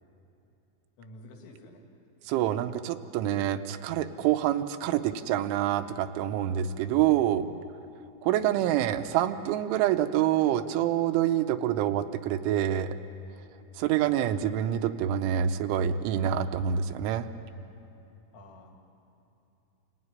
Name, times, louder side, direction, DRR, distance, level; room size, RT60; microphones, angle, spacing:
voice 1, 1.0-1.8 4.2-4.3 8.5-8.9 14.2-14.6 18.3-18.8, left 1 dB, 85° left, 1 dB, 5.0 m, -50 dB
voice 2, 2.3-7.5 8.2-13.0 13.8-17.3, right 11 dB, 80° right, 8 dB, 3.1 m, -26 dB
27.5 x 17.0 x 9.7 m, 2.8 s
omnidirectional pair, 5.6 m